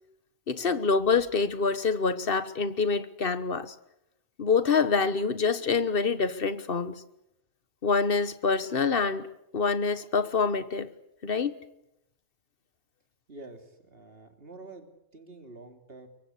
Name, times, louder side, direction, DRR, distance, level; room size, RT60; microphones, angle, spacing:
voice 1, 0.5-3.7 4.4-6.9 7.8-10.9 11.2-11.6, left 5 dB, 55° left, 13 dB, 1.5 m, -26 dB
voice 2, 13.3-16.1, right 2 dB, 55° right, 6 dB, 3.2 m, -47 dB
24.0 x 23.0 x 8.5 m, 0.83 s
omnidirectional pair, 1.2 m